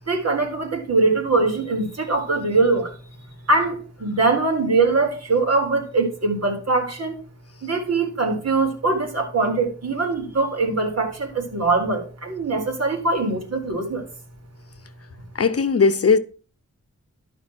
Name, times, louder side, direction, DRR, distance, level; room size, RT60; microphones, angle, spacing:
voice 1, 0.1-2.9 3.5-7.2 7.6-14.1, right 3 dB, 60° right, 4.1 m, -22 dB
voice 2, 15.3-16.2, left 5 dB, 55° left, 0.8 m, -18 dB
13.0 x 5.3 x 6.1 m
wide cardioid pair, 80°, 29 cm